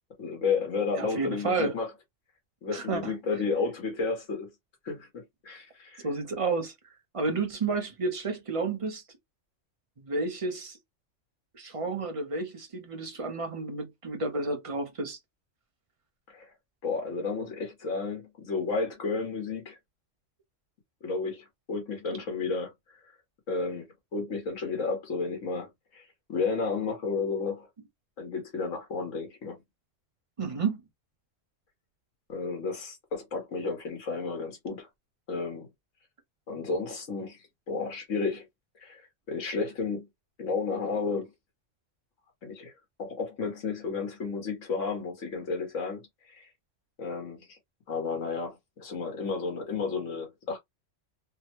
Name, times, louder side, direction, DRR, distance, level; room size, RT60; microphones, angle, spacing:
voice 1, 0.2-1.9 2.6-4.5 4.8-6.1 16.3-16.5 16.8-19.8 21.0-22.7 23.5-23.9 24.1-26.0 26.3-27.7 28.2-29.6 32.3-34.9 35.3-35.7 36.5-37.4 37.7-38.5 38.8-40.1 40.4-41.3 42.4-42.7 43.0-46.5 47.0-47.6 47.9-50.6, left 4 dB, 85° left, 1.5 m, -32 dB
voice 2, 1.0-1.7 2.7-3.1 6.0-6.7 7.1-9.0 10.0-10.8 11.5-15.2 30.4-30.8, right 3 dB, 35° right, 0.7 m, -31 dB
3.4 x 2.1 x 2.8 m
omnidirectional pair, 1.3 m